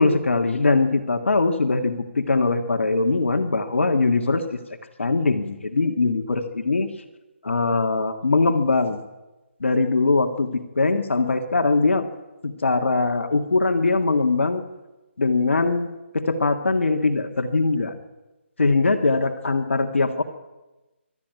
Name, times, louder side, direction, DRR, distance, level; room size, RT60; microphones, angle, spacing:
voice 1, 0.0-4.6 5.0-6.9 7.4-9.0 9.6-12.1 12.4-14.6 15.2-15.9 16.1-17.9 18.6-20.2, left 3 dB, 70° left, 5 dB, 1.9 m, -21 dB
24.0 x 13.0 x 9.4 m, 1.1 s
figure-of-eight pair, 150°, 7 cm